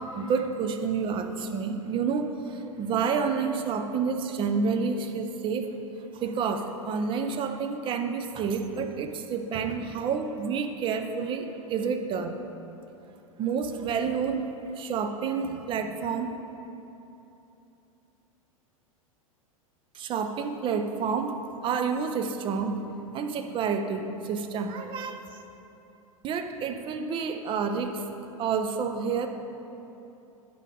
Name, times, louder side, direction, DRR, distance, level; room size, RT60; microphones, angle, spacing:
voice 1, 0.0-5.7 6.1-12.4 13.4-14.5 14.7-16.3 19.9-21.3 21.6-22.8 23.1-25.2 26.2-28.1 28.4-29.3, right 5 dB, 30° right, 6 dB, 0.5 m, -29 dB
9.9 x 5.1 x 3.7 m, 2.9 s
figure-of-eight pair, 90°, 18 cm